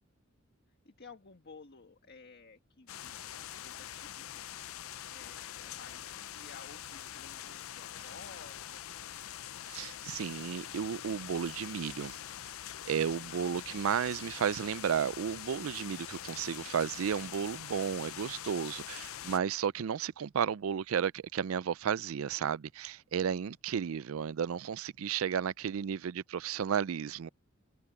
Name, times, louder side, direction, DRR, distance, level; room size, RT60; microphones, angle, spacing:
voice 1, 0.8-3.2 3.4-4.8 5.1-9.4 13.2-13.6, left 4 dB, 50° left, 1.6 m, -55 dB
sound 1, 2.9-19.4, left 11 dB, 80° left, 0.5 m, -44 dB
voice 2, 9.7-12.2 12.9-27.3, right 7 dB, 75° right, 0.4 m, -33 dB
head